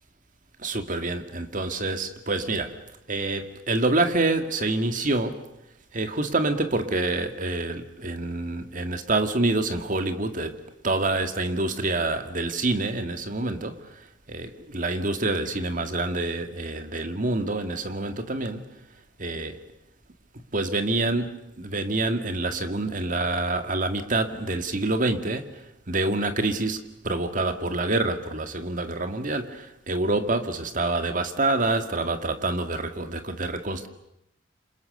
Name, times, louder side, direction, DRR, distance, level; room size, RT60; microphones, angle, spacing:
voice 1, 0.6-2.8 3.1-5.5 5.9-18.8 19.2-19.6 20.5-33.9, right 2 dB, 45° right, 2.1 m, -27 dB
29.0 x 26.5 x 6.9 m
head